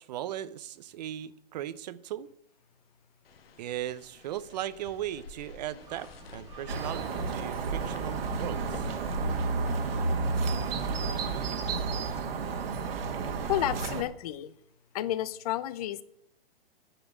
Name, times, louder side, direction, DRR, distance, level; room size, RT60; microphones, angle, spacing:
voice 1, 0.0-2.3 3.6-8.9, right 12 dB, 45° right, 0.7 m, -38 dB
sound 1, 3.2-12.2, left 2 dB, 70° left, 1.7 m, -47 dB
sound 2, 5.8-11.6, right 2 dB, 10° right, 1.8 m, -51 dB
sound 3, 6.7-14.0, right 4 dB, 70° right, 1.8 m, -31 dB
voice 2, 13.5-14.5 14.9-16.0, left 13 dB, 40° left, 0.7 m, -31 dB
10.0 x 7.0 x 8.0 m
hypercardioid pair, 145°, 31 cm